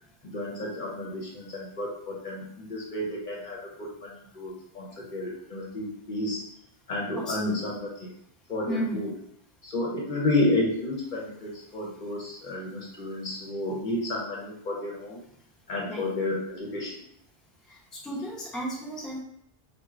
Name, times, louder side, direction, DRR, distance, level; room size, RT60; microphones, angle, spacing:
voice 1, 0.2-6.4 6.9-7.9 8.5-9.1 9.6-15.2 15.7-17.0, left 1 dB, 55° left, -3 dB, 0.9 m, -31 dB
voice 2, 7.1-7.8 8.7-9.1 15.9-16.1 17.7-19.2, equal, ahead, -6 dB, 0.7 m, -34 dB
4.3 x 2.2 x 2.4 m, 0.71 s
omnidirectional pair, 1.0 m